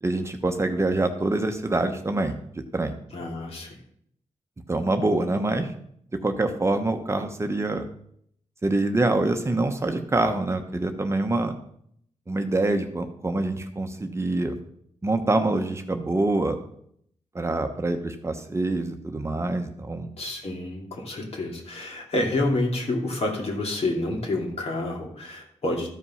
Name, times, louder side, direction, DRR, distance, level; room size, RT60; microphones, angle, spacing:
voice 1, 0.0-2.4 2.7-2.9 4.7-5.7 6.2-7.8 8.6-11.5 12.3-14.6 15.0-16.6 17.3-20.1, right 2 dB, 25° right, 5 dB, 1.0 m, -25 dB
voice 2, 3.1-3.7 20.2-25.9, left 2 dB, 60° left, 0 dB, 2.7 m, -28 dB
13.5 x 5.4 x 5.6 m, 0.68 s
cardioid pair, 100°, 12 cm